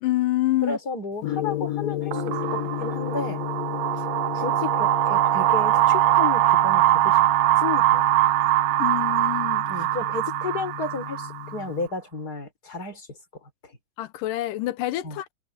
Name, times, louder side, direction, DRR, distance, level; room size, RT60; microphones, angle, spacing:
voice 1, 0.0-0.8 8.8-9.7 14.0-15.3, left 16 dB, 90° left, 2.5 m, -26 dB
voice 2, 0.6-3.4 3.9-4.1 4.3-7.2 7.6-8.1 9.7-13.1 13.4-13.7 15.0-15.2, left 4 dB, 30° left, 5.3 m, -33 dB
Gong, 1.2-11.9, left 15 dB, 65° left, 1.8 m, -34 dB
sound 1, 2.1-11.6, right 16 dB, 80° right, 1.6 m, -22 dB
omnidirectional pair, 3.7 m